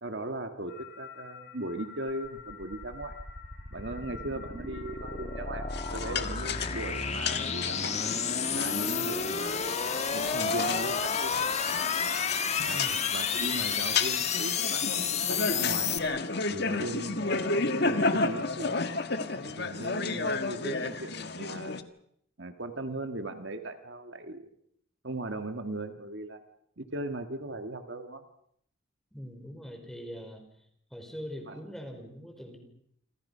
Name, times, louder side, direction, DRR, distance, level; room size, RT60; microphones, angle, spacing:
voice 1, 0.0-3.1 3.7-8.1 8.5-9.6 10.1-11.5 12.6-16.0 16.5-17.5 17.8-18.8 19.4-21.7 22.4-24.5 25.0-26.4 26.8-28.2 31.5-31.6, right 2 dB, 60° right, 7 dB, 1.9 m, -38 dB
sound 1, 0.7-19.6, left 5 dB, 90° left, 7.6 m, -48 dB
sound 2, 2.3-16.0, left 6 dB, 35° left, 1.6 m, -31 dB
sound 3, 5.7-21.8, left 3 dB, 55° left, 1.7 m, -33 dB
voice 2, 12.7-13.0 29.1-30.4 30.9-32.6, equal, ahead, 4 dB, 5.0 m, -42 dB
29.0 x 26.0 x 5.7 m, 0.69 s
head